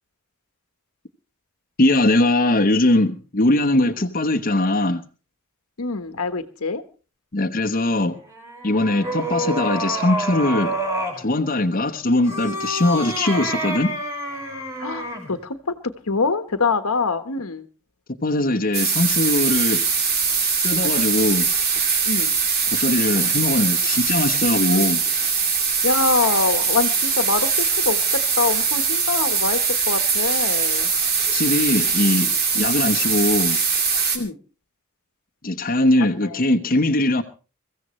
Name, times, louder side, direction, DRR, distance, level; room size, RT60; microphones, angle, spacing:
voice 1, 1.8-5.0 7.3-8.2 8.6-10.7 11.2-13.9 18.2-19.8 20.6-21.5 22.7-25.0 31.3-33.6 35.4-37.2, left 1 dB, 40° left, 5 dB, 1.1 m, -20 dB
voice 2, 5.8-6.8 14.8-17.7 22.1-22.3 25.8-29.6 29.9-30.9 32.5-32.7 34.1-34.4 36.1-36.4, left 4 dB, 90° left, 9 dB, 1.3 m, -24 dB
sound 1, 8.2-11.2 12.2-15.3, right 1 dB, 15° right, 5.3 m, -28 dB
sound 2, 18.7-34.2, right 5 dB, 45° right, 2.4 m, -21 dB
23.0 x 15.0 x 3.2 m, 0.35 s
head